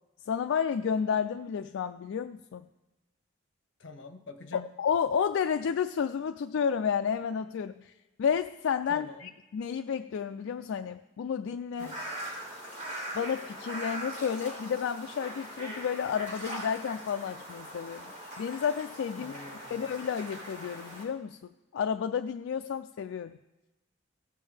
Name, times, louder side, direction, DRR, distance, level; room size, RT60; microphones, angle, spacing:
voice 1, 0.3-2.7 4.5-7.9 8.2-11.9 13.1-19.3 19.7-23.4, left 7 dB, 90° left, 8 dB, 0.3 m, -31 dB
voice 2, 3.8-4.7 8.9-9.3 11.8-12.0 19.2-19.8, left 4 dB, 70° left, 8 dB, 0.9 m, -45 dB
sound 1, 11.8-21.0, right 1 dB, 35° right, 3.5 m, -41 dB
17.0 x 7.3 x 3.4 m, 1.1 s
head